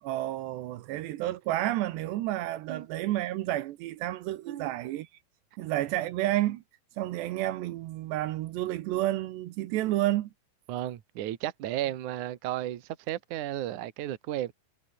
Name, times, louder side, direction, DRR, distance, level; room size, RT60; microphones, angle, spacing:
voice 1, 0.0-5.1 5.6-6.6 7.0-10.3, right 15 dB, 80° right, 3.1 m, -30 dB
voice 2, 10.7-14.5, right 13 dB, 60° right, 2.4 m, -34 dB
omnidirectional pair, 5.1 m